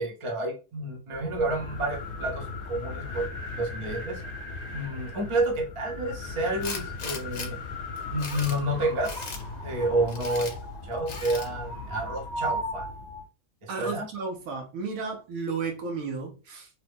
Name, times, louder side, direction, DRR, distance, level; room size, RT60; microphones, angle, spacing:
voice 1, 0.0-3.3 3.5-4.2 4.7-7.6 8.1-9.4 9.6-10.5 10.8-12.9 13.6-14.1, right 1 dB, 30° right, 0.6 m, -29 dB
sound 1, 1.1-13.3, left 2 dB, 40° left, 1.1 m, -37 dB
Tools, 6.6-7.5 8.0-8.6 9.0-9.4 10.1-10.5 11.1-11.5, left 4 dB, 70° left, 0.4 m, -37 dB
voice 2, 13.7-16.7, right 4 dB, 75° right, 1.1 m, -33 dB
3.0 x 2.1 x 3.4 m
omnidirectional pair, 1.5 m